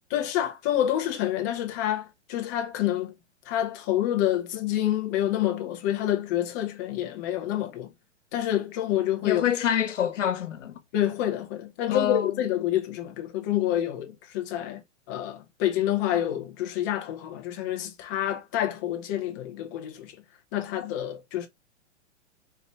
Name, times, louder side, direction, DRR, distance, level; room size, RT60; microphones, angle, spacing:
voice 1, 0.1-3.1 3.5-7.9 8.3-9.4 10.9-14.8 15.1-20.2 20.5-21.5, left 12 dB, 15° left, 0.4 m, -28 dB
voice 2, 9.2-10.8 11.9-12.3, left 10 dB, 75° left, 1.1 m, -26 dB
4.3 x 2.8 x 3.3 m
hypercardioid pair, 150°, 37 cm